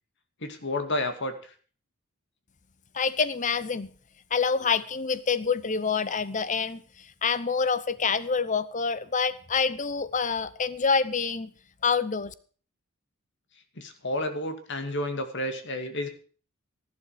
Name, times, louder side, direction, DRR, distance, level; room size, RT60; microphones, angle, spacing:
voice 1, 0.4-1.5 13.8-16.1, left 1 dB, 55° left, 8 dB, 2.4 m, -31 dB
voice 2, 2.9-3.9 4.3-6.8 7.2-11.5 11.8-12.3, left 5 dB, 35° left, 16 dB, 0.7 m, -26 dB
14.5 x 12.0 x 5.0 m, 0.41 s
head